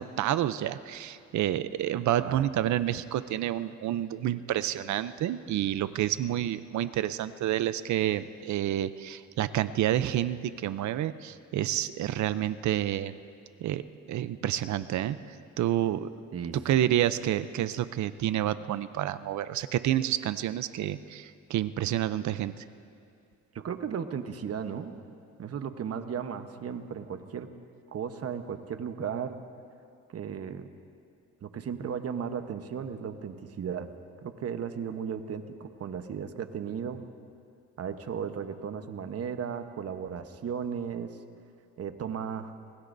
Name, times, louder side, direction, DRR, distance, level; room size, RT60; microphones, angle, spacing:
voice 1, 0.0-13.1 13.6-15.2 15.6-16.1 16.6-22.6, right 12 dB, 70° right, 14 dB, 0.6 m, -29 dB
voice 2, 2.2-2.5 16.3-16.6 23.5-24.9 25.4-27.5 27.9-29.4 30.1-30.7 31.4-33.9 34.2-37.0 37.8-41.1 41.8-42.5, right 7 dB, 55° right, 8 dB, 1.1 m, -35 dB
26.5 x 20.0 x 2.7 m, 2.5 s
cardioid pair, 90°, 30 cm